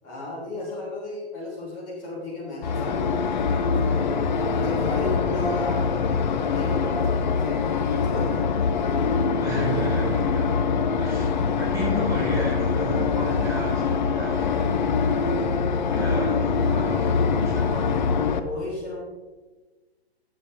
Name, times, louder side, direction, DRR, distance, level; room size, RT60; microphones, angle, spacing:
voice 1, 0.0-5.9 6.3-8.4 18.3-19.0, left 2 dB, 25° left, -6 dB, 3.4 m, -34 dB
sound 1, 2.6-18.4, left 5 dB, 45° left, 0.8 m, -24 dB
voice 2, 9.4-10.5 11.0-15.5 15.9-16.4 16.7-18.1, right 1 dB, 10° right, -7 dB, 3.9 m, -33 dB
15.0 x 7.2 x 3.5 m, 1.2 s
figure-of-eight pair, 125°, 33 cm